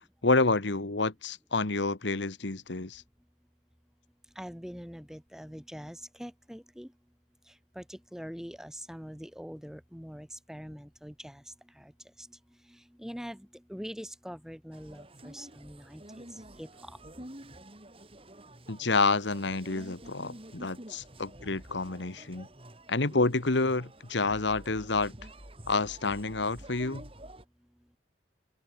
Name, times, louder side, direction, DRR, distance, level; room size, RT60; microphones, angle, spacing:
voice 1, 0.2-3.0 18.7-22.5 22.9-25.1 25.7-27.0, left 3 dB, 70° left, 1.4 m, -28 dB
voice 2, 4.3-6.9 7.7-11.4 11.8-11.9 12.2-12.3 12.7-16.3 16.6-17.0, equal, 5° right, 3.6 m, -43 dB
sound 1, 14.7-27.4, right 1 dB, 30° right, 4.6 m, -49 dB
open air
head